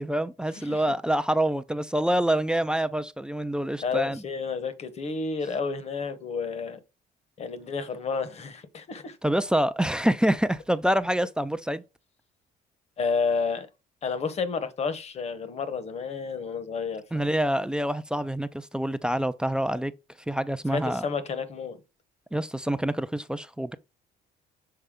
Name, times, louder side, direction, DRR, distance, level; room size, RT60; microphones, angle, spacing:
voice 1, 0.0-4.2 9.2-11.8 17.1-19.9 20.3-21.0 22.3-23.8, right 1 dB, 5° right, 0.4 m, -26 dB
voice 2, 3.8-6.8 7.4-9.2 13.0-13.7 14.0-17.3 20.7-21.8, left 5 dB, 40° left, 1.0 m, -30 dB
6.8 x 4.1 x 3.7 m
cardioid pair, 110°, 17 cm